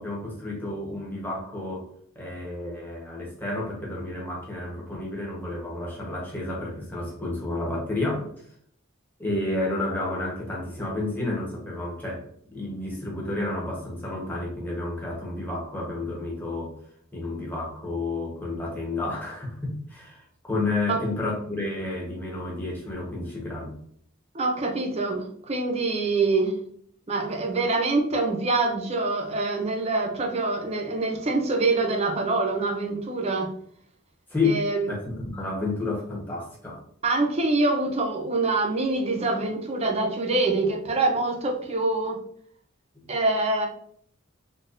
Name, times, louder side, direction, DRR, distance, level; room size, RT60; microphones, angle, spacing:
voice 1, 0.0-1.9 2.1-8.3 9.2-16.7 17.1-23.8 34.3-36.8 42.9-43.1, left 2 dB, 10° left, -3 dB, 0.9 m, -31 dB
voice 2, 24.3-26.6 27.1-33.5 34.4-34.9 37.0-42.2 43.1-43.7, right 3 dB, 30° right, 2 dB, 0.5 m, -25 dB
3.9 x 2.3 x 2.5 m, 0.64 s
head